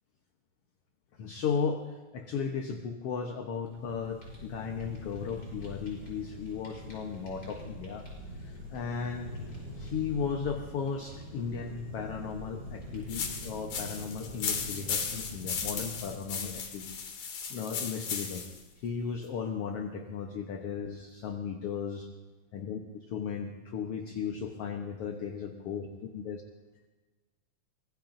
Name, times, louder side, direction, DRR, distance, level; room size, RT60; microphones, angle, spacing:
voice 1, 1.2-1.8 2.1-8.0 8.4-9.4 9.8-16.8 17.5-18.4 18.8-22.1 22.5-22.8 23.1-26.4, left 6 dB, 60° left, 3 dB, 1.8 m, -35 dB
Fire, 3.5-17.1, left 1 dB, 30° left, 7.5 m, -44 dB
sound 1, 13.1-18.6, left 6 dB, 75° left, 3.3 m, -36 dB
24.5 x 21.0 x 2.7 m, 1.3 s
omnidirectional pair, 3.5 m